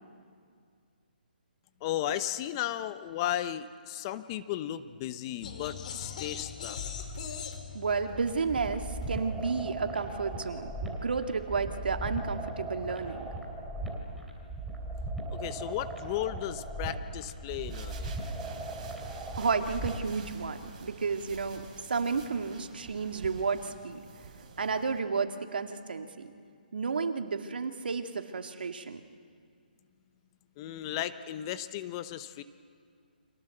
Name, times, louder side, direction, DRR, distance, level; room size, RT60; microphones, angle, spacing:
voice 1, 1.8-6.8 15.3-18.1 30.6-32.4, left 12 dB, 30° left, 12 dB, 0.9 m, -35 dB
sound 1, 5.4-9.6, left 6 dB, 50° left, 3.0 m, -41 dB
voice 2, 7.7-13.3 19.4-21.6 21.9-24.0 24.6-26.3 26.7-29.0, right 5 dB, 75° right, 5 dB, 2.3 m, -32 dB
sound 2, 8.1-20.1, right 2 dB, 5° right, 3.1 m, -38 dB
sound 3, 17.5-25.0, right 5 dB, 40° right, 4.1 m, -48 dB
30.0 x 25.0 x 7.9 m, 2.2 s
hypercardioid pair, 155°, 5 cm